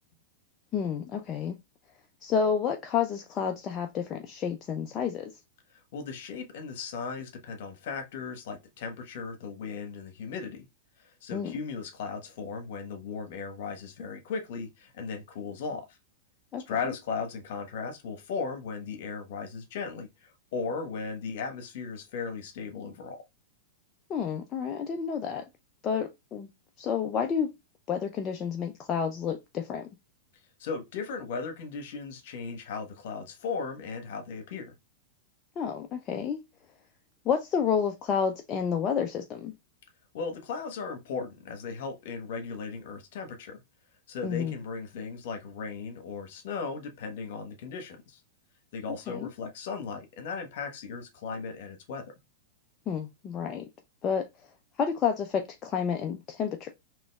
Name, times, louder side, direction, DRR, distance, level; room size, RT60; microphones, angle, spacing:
voice 1, 0.7-1.6 2.2-5.3 11.3-11.5 16.5-16.7 24.1-25.5 25.8-26.5 26.8-27.5 27.9-29.9 35.6-36.4 37.3-39.5 44.2-44.5 49.1-49.3 52.9-53.7 54.0-54.3 54.8-56.7, left 7 dB, 30° left, 0.5 m, -30 dB
voice 2, 5.9-10.7 11.0-15.9 16.7-23.2 30.6-34.7 40.1-43.6 44.1-48.2 48.7-52.0, left 5 dB, 60° left, 1.1 m, -37 dB
4.0 x 3.0 x 2.2 m
hypercardioid pair, 100°, 0 cm